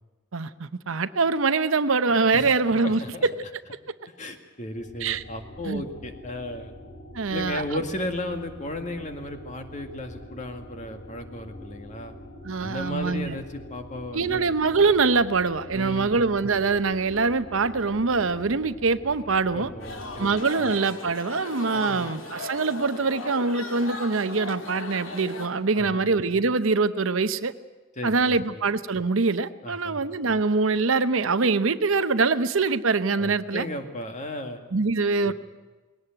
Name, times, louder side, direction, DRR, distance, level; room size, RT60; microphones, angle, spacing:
voice 1, 0.3-3.3 5.0-5.2 5.6-5.8 7.1-7.6 12.4-13.4 14.1-19.7 20.2-27.5 28.0-33.7 34.7-35.3, right 4 dB, 75° right, 12 dB, 0.8 m, -24 dB
voice 2, 2.8-3.3 4.2-6.7 7.3-12.1 12.6-14.6 15.7-16.3 19.5-20.3 21.7-22.1 25.7-26.1 28.0-28.6 29.6-30.0 33.1-34.6 35.2-35.3, left 1 dB, 35° left, 5 dB, 2.0 m, -35 dB
sound 1, 4.5-20.4, equal, 55° left, 3.1 m, -44 dB
sound 2, 19.8-25.5, left 2 dB, 70° left, 2.7 m, -37 dB
20.5 x 17.5 x 9.1 m, 1.2 s
head